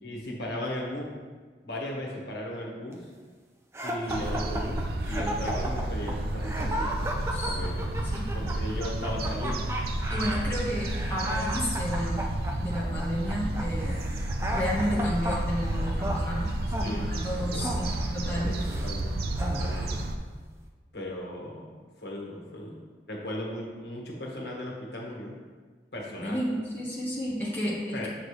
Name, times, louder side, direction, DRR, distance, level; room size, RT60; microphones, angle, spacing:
voice 1, 0.0-1.1 1.6-3.0 3.8-8.0 8.3-9.7 16.8-18.0 18.3-19.9 20.9-21.7 22.0-22.8 23.1-25.3 25.9-26.4 27.9-28.1, left 1 dB, 70° left, -2 dB, 1.6 m, -37 dB
sound 1, 3.7-18.9 19.4-20.0, equal, 15° right, 0.6 m, -35 dB
sound 2, 4.1-20.2, right 1 dB, 60° right, 0.6 m, -31 dB
voice 2, 8.0-8.4 10.1-12.3 12.6-14.1 14.5-16.5 16.8-18.6 26.2-28.1, equal, 10° left, -6 dB, 1.2 m, -32 dB
7.5 x 6.3 x 3.3 m, 1.5 s
head